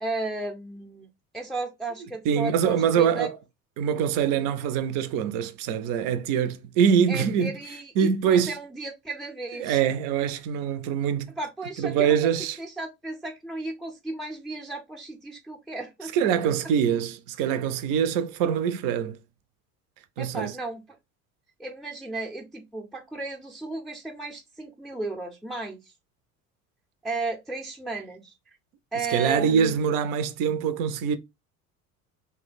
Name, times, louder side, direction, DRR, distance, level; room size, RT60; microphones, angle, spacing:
voice 1, 0.0-1.1 1.3-3.3 7.1-9.8 11.4-12.3 12.6-16.1 20.2-20.8 21.6-25.9 27.0-28.3 28.9-29.7, right 3 dB, ahead, 0.6 m, -34 dB
voice 2, 2.2-3.3 3.8-7.5 8.0-8.5 9.6-11.3 11.8-12.6 16.1-19.2 20.2-20.5 29.1-31.2, right 8 dB, 50° right, 0.6 m, -24 dB
2.8 x 2.1 x 4.0 m
hypercardioid pair, 70°, 42 cm